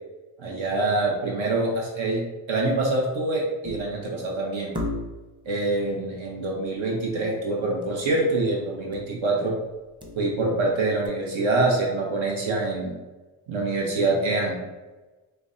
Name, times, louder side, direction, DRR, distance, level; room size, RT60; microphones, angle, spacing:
voice 1, 0.4-2.2 2.5-4.8 5.5-9.6 10.2-12.9 13.5-14.6, right 2 dB, 70° right, -1 dB, 0.9 m, -25 dB
sound 1, 3.6-4.1 4.7-5.4 7.8-8.1 8.3-8.4 8.9-9.2 9.7-10.6 11.1-11.2, left 2 dB, 10° right, 0.7 m, -35 dB
5.0 x 2.2 x 2.5 m, 1.1 s
cardioid pair, 85°, 48 cm